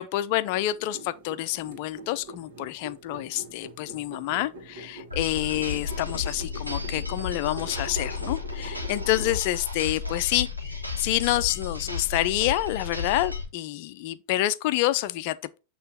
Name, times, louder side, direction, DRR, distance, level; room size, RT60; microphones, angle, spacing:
voice 1, 0.0-15.4, left 15 dB, 45° left, 0.5 m, -28 dB
sound 1, 0.5-10.0, right 2 dB, 55° right, 2.1 m, -44 dB
sound 2, 5.1-13.4, left 5 dB, 85° right, 1.6 m, -33 dB
8.7 x 3.2 x 4.2 m
figure-of-eight pair, 90°, 0 cm